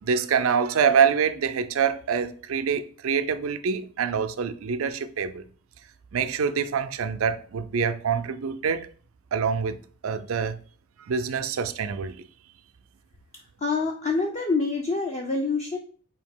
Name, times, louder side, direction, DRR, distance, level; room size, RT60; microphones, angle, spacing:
voice 1, 0.0-5.4 6.1-8.9 9.3-10.6 11.1-12.2, right 6 dB, 75° right, 0.4 m, -25 dB
voice 2, 13.6-15.8, left 3 dB, 30° left, 0.4 m, -26 dB
4.8 x 2.8 x 3.5 m
head